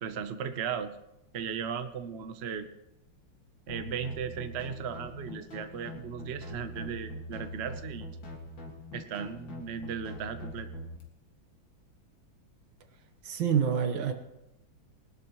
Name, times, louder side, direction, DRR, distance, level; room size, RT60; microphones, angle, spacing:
voice 1, 0.0-0.9 1.3-2.7 3.7-8.1 8.9-10.7, right 7 dB, 55° right, 9 dB, 0.7 m, -36 dB
sound 1, 3.7-11.0, left 1 dB, 65° left, 2.7 m, -43 dB
voice 2, 13.3-14.1, right 7 dB, 70° right, 7 dB, 1.9 m, -27 dB
20.5 x 12.0 x 3.1 m, 0.89 s
omnidirectional pair, 2.2 m